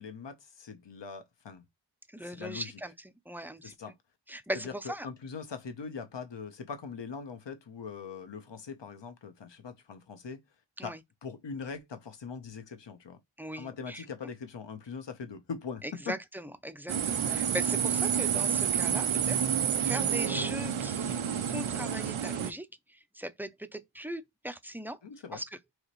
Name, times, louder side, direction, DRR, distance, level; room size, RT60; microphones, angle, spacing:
voice 1, 0.0-1.6 2.2-2.7 3.6-3.9 4.5-10.4 10.8-11.0 11.2-13.2 13.6-16.1 25.0-25.4, left 5 dB, 65° left, 1.0 m, -41 dB
voice 2, 2.1-3.7 4.3-5.1 10.8-11.0 13.4-14.1 15.8-25.0 25.3-25.4, equal, 5° right, 0.5 m, -39 dB
sound 1, 16.9-22.5, right 8 dB, 80° right, 0.6 m, -29 dB
4.8 x 2.9 x 3.1 m
wide cardioid pair, 45°, 47 cm